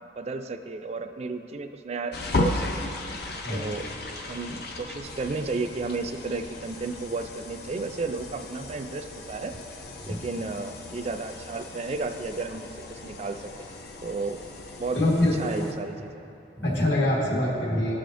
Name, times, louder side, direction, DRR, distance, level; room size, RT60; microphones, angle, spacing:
voice 1, 0.2-2.8 3.5-3.9 4.3-9.5 10.0-13.7 14.0-14.4 14.8-15.0 15.4-16.2, right 3 dB, 35° right, 7 dB, 0.3 m, -33 dB
sound 1, 2.1-15.7, left 2 dB, 60° left, 0.6 m, -36 dB
voice 2, 14.9-15.3 16.6-18.0, left 1 dB, 80° left, -4 dB, 1.6 m, -24 dB
14.0 x 4.9 x 2.6 m, 2.9 s
head